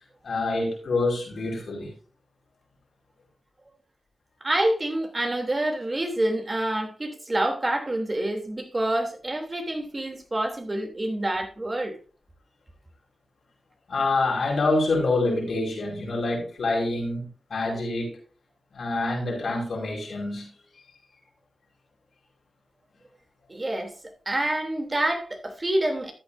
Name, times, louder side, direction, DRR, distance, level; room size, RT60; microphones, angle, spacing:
voice 1, 0.2-1.9 13.9-18.2 18.7-20.5, left 2 dB, 75° left, 5.2 m, -26 dB
voice 2, 4.4-12.0 23.5-23.9 24.2-26.1, right 1 dB, 35° right, 3.2 m, -27 dB
13.5 x 9.1 x 2.7 m
cardioid pair, 50°, 0 cm